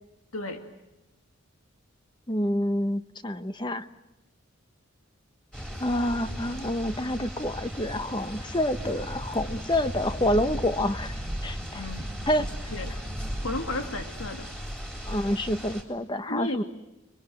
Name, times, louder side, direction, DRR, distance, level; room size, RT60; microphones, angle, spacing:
voice 1, 2.3-3.9 5.8-11.2 11.4-11.9 12.3-12.5 15.1-16.6, left 1 dB, 20° left, 11 dB, 1.0 m, -28 dB
sound 1, 5.5-15.8, equal, 5° left, 4.0 m, -36 dB
voice 2, 11.7-12.1 12.7-13.0 13.4-14.5 16.3-16.6, left 2 dB, 85° left, 5 dB, 2.4 m, -33 dB
30.0 x 23.5 x 7.7 m, 0.96 s
head